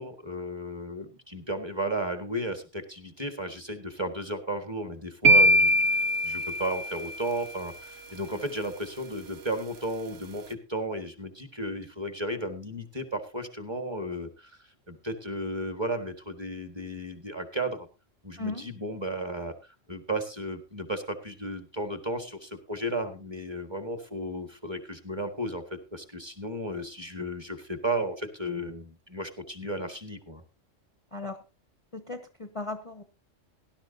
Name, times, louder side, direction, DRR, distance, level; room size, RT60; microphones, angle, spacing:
voice 1, 0.0-14.6 14.9-17.9 18.2-19.5 19.9-30.4, right 1 dB, 20° right, 6 dB, 1.8 m, -34 dB
sound 1, 5.2-7.4, equal, 60° right, 1.2 m, -22 dB
voice 2, 18.4-18.7 31.1-31.4 31.9-33.0, left 3 dB, 30° left, 7 dB, 1.0 m, -36 dB
18.5 x 11.5 x 2.8 m, 0.29 s
omnidirectional pair, 1.3 m